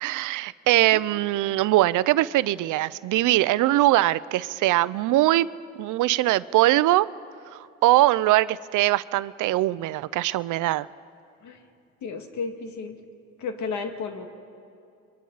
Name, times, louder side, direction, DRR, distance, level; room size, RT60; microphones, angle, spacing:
voice 1, 0.0-5.5 5.8-7.1 7.5-10.9, right 16 dB, 85° right, 18 dB, 0.5 m, -22 dB
voice 2, 12.0-13.0 13.4-14.3, left 5 dB, 70° left, 5 dB, 2.0 m, -33 dB
29.0 x 22.5 x 4.0 m, 2.5 s
cardioid pair, 90°, 30 cm